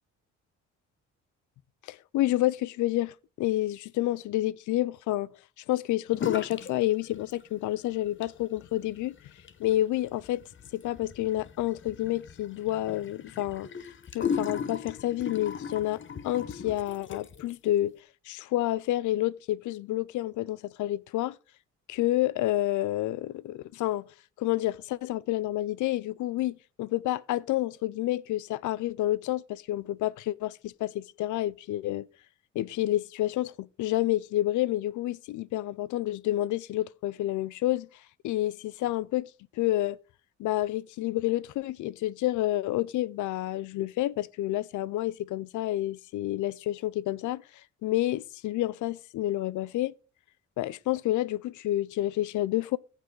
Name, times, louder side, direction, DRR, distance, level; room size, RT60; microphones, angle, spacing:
voice 1, 1.9-5.3 5.7-9.2 9.6-10.4 10.7-13.7 14.1-17.9 18.3-21.4 21.9-24.1 24.4-32.1 32.5-37.9 38.2-39.3 39.6-40.0 40.4-47.4 47.8-49.9 50.6-52.8, left 15 dB, 75° left, 0.5 m, -29 dB
sound 1, 6.1-6.7 7.0-7.7 8.1-17.5, left 7 dB, 40° left, 0.9 m, -37 dB
15.0 x 5.4 x 3.9 m
cardioid pair, 90°, 30 cm